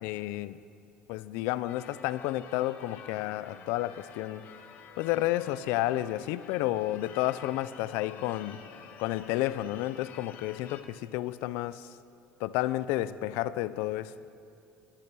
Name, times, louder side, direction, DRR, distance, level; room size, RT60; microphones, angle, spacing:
voice 1, 0.0-0.6 1.1-4.5 5.0-8.6 9.0-11.9 12.4-14.1, left 15 dB, 80° left, 16 dB, 0.4 m, -31 dB
Church bell / Car / Alarm, 1.7-10.8, left 7 dB, 55° left, 0.8 m, -50 dB
12.5 x 8.6 x 6.0 m, 2.4 s
cardioid pair, 150°, 4 cm